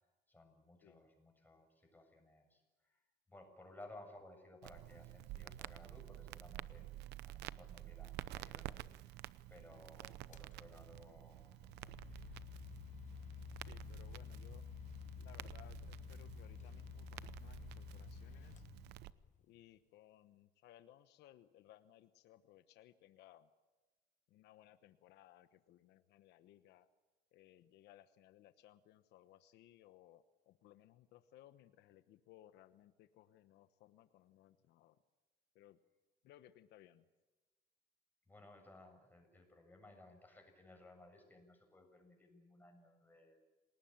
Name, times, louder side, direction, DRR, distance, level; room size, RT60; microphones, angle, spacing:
voice 1, 0.3-3.0 3.3-9.2 9.5-12.5 38.3-43.4, left 2 dB, 10° left, 3 dB, 7.2 m, -60 dB
Crackle, 4.6-19.1, right 15 dB, 80° right, 0.8 m, -51 dB
sound 1, 10.3-10.5 11.4-19.4, left 9 dB, 45° left, 0.9 m, -52 dB
voice 2, 13.6-14.7 15.2-18.7 19.4-23.5 24.3-26.9 27.3-35.0 35.5-35.8 36.2-37.1, left 13 dB, 85° left, 11 dB, 1.1 m, -63 dB
27.5 x 19.0 x 8.9 m, 1.2 s
cardioid pair, 110°, 17 cm